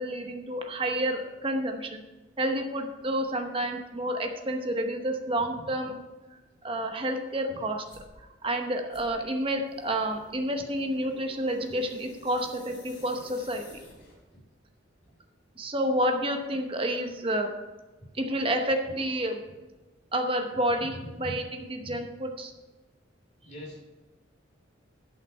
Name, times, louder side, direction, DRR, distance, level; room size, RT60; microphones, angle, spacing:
voice 1, 0.0-2.0 2.4-6.0 6.6-7.8 8.2-13.7 15.6-17.5 18.1-19.4 20.1-22.5, right 1 dB, 30° right, 5 dB, 0.9 m, -29 dB
sound 1, 7.9-8.2 8.9-14.3, left 1 dB, 55° left, 3.4 m, -53 dB
voice 2, 23.4-23.8, equal, 40° left, -1 dB, 2.8 m, -42 dB
11.0 x 5.8 x 5.6 m, 1.2 s
head